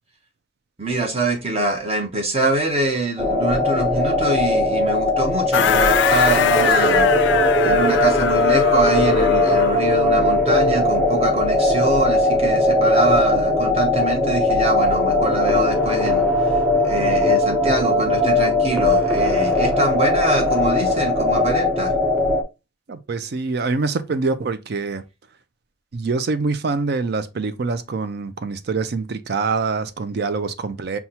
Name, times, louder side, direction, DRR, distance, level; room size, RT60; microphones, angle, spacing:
voice 1, 0.8-7.3 7.6-21.9, right 2 dB, 35° right, 1.0 m, -24 dB
sound 1, 3.2-22.4, left 2 dB, ahead, 0.7 m, -19 dB
sound 2, 5.5-9.9, left 8 dB, 65° left, 0.3 m, -23 dB
voice 2, 22.9-25.0 25.9-31.0, right 4 dB, 60° right, 0.5 m, -25 dB
5.6 x 2.3 x 2.8 m
head